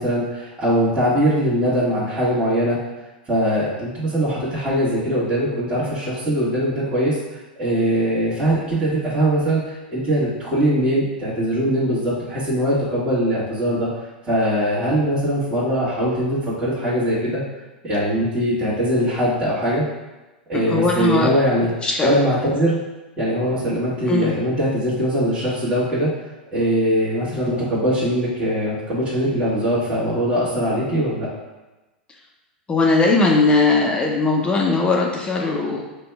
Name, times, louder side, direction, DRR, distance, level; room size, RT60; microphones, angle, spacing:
voice 1, 0.0-2.8 3.3-7.2 7.6-13.9 14.3-17.4 17.8-19.9 20.5-21.7 22.0-22.8 23.2-26.1 26.5-31.3, equal, 20° right, -10 dB, 1.5 m, -21 dB
voice 2, 20.5-21.3 21.8-22.1 24.1-24.3 32.7-35.8, left 3 dB, 20° left, -1 dB, 0.6 m, -19 dB
5.1 x 2.3 x 3.4 m, 1.1 s
hypercardioid pair, 95°, 5 cm